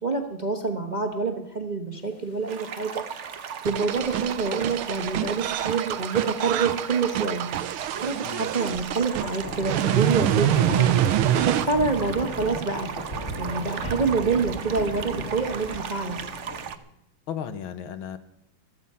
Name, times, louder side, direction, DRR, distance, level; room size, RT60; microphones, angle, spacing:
voice 1, 0.0-3.0 3.6-7.5 8.0-11.0 11.4-12.9 13.4-16.2, right 4 dB, 30° right, 4 dB, 1.0 m, -27 dB
sound 1, 2.5-16.8, right 7 dB, 60° right, 0.7 m, -37 dB
sound 2, 2.6-16.7, equal, 35° left, 2.2 m, -38 dB
sound 3, 3.7-11.7, right 11 dB, 85° right, 1.6 m, -25 dB
voice 2, 17.3-18.2, left 8 dB, 75° left, 11 dB, 1.8 m, -34 dB
15.0 x 14.0 x 5.5 m, 0.76 s
omnidirectional pair, 2.3 m